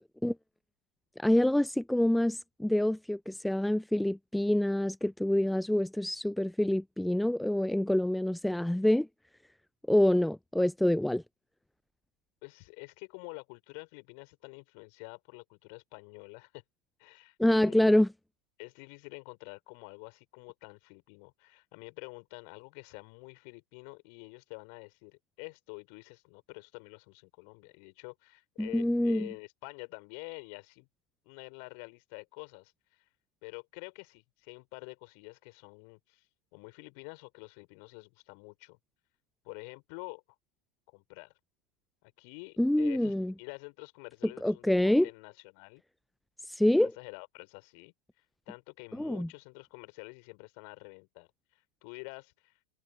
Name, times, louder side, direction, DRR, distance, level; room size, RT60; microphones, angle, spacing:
voice 1, 1.2-9.1 9.9-11.2 17.4-18.1 28.6-29.3 42.6-43.3 44.4-45.1 46.5-46.9 49.0-49.3, left 1 dB, 5° left, 0.7 m, -26 dB
voice 2, 12.4-16.6 17.0-18.0 18.6-30.9 31.3-33.0 33.4-36.2 36.5-38.8 39.4-40.2 40.9-41.3 42.0-45.8 46.8-47.9 48.5-52.5, left 40 dB or more, 45° left, 5.5 m, -48 dB
figure-of-eight pair, 90°, 0 cm